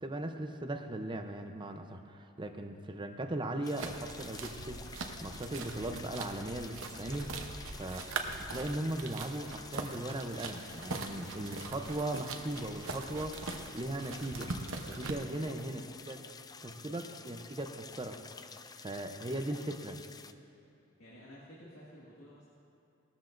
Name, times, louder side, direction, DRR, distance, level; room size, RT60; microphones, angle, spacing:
voice 1, 0.0-8.0 8.4-14.5 14.9-16.2 16.6-18.2 18.8-20.0, right 1 dB, 25° right, 5 dB, 0.7 m, -38 dB
sound 1, 3.6-20.3, left 5 dB, 20° left, 0.3 m, -50 dB
sound 2, 3.8-15.1, right 3 dB, 70° right, 0.9 m, -42 dB
voice 2, 20.8-22.5, equal, 80° left, -6 dB, 1.9 m, -54 dB
18.5 x 13.5 x 2.6 m, 2.8 s
head